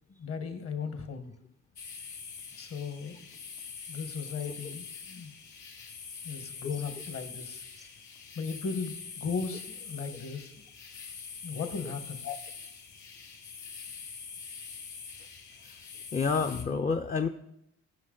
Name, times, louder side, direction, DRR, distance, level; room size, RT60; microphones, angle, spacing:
voice 1, 0.1-1.3 2.6-3.3 3.9-5.3 6.2-7.6 8.3-10.6 11.4-12.2, left 5 dB, 50° left, 9 dB, 1.3 m, -37 dB
sound 1, 1.8-16.6, left 6 dB, 75° left, 1.5 m, -44 dB
voice 2, 16.1-17.3, left 5 dB, 25° left, 5 dB, 0.5 m, -29 dB
15.0 x 5.7 x 3.8 m, 0.81 s
cardioid pair, 90°, 30 cm